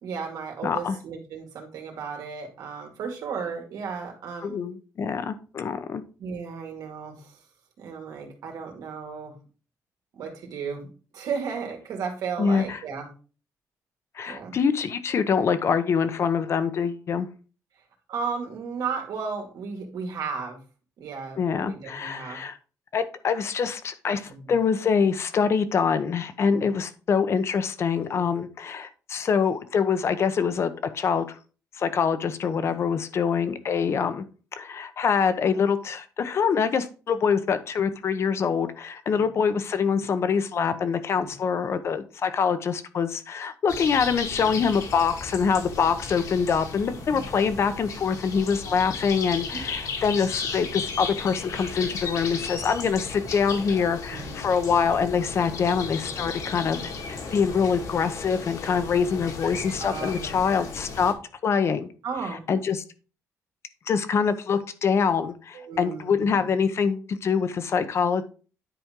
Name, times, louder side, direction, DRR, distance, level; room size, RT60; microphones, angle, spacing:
voice 1, 0.0-4.6 6.2-7.4 7.8-9.3 10.1-10.9 11.1-13.1 14.3-14.6 18.1-20.6 21.0-22.4 24.2-24.6 26.5-26.7 28.1-28.2 34.0-34.1 39.1-39.2 41.2-41.3 44.6-44.7 47.1-47.2 49.5-49.6 54.1-54.4 59.8-60.3 62.0-62.4 65.5-66.5, right 5 dB, 80° right, 2 dB, 2.3 m, -34 dB
voice 2, 0.6-1.0 4.4-6.0 12.4-12.8 14.1-17.3 21.4-22.6 22.9-31.3 31.8-34.2 34.6-56.8 57.1-61.1 61.4-61.9 62.5-62.8 63.9-68.2, left 6 dB, 45° left, 11 dB, 0.8 m, -25 dB
sound 1, 43.7-61.1, left 4 dB, 65° left, 1.9 m, -35 dB
10.0 x 4.3 x 3.7 m, 0.36 s
cardioid pair, 150°, 6 cm